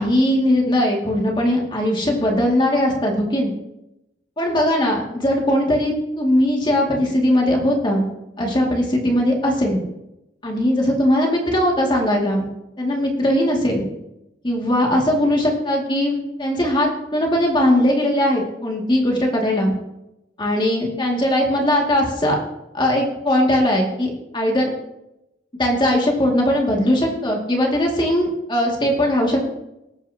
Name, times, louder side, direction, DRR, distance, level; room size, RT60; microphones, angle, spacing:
voice 1, 0.0-3.5 4.4-8.1 8.4-9.8 10.4-12.5 12.8-13.9 14.4-19.7 20.4-22.4 22.7-24.7 25.6-29.5, left 1 dB, 30° left, -1 dB, 2.1 m, -19 dB
18.5 x 9.3 x 2.8 m, 0.88 s
head